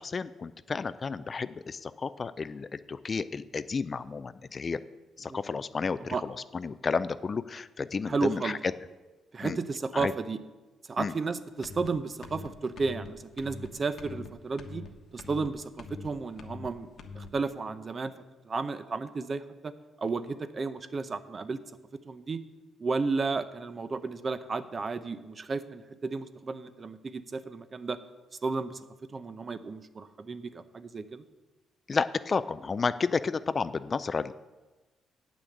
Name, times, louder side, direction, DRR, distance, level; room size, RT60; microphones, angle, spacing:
voice 1, 0.0-4.8 5.2-8.6 9.4-9.6 9.9-10.1 11.0-11.1 31.9-34.3, left 5 dB, 35° left, 14 dB, 0.4 m, -32 dB
voice 2, 8.1-8.6 9.3-10.4 10.9-14.8 15.1-16.9 17.1-18.1 18.4-19.7 20.0-21.6 22.1-22.4 22.8-28.0 28.4-28.8 29.1-31.2, right 4 dB, 35° right, 12 dB, 0.7 m, -33 dB
sound 1, 11.6-11.9 12.2-12.5 12.8-13.1 13.4-13.7 14.0-14.3 14.6-14.9 15.2-15.5 15.8-16.1 16.4-16.7 17.0-17.3, left 4 dB, 60° left, 1.2 m, -43 dB
8.6 x 6.2 x 8.0 m, 1.2 s
cardioid pair, 90°, 0 cm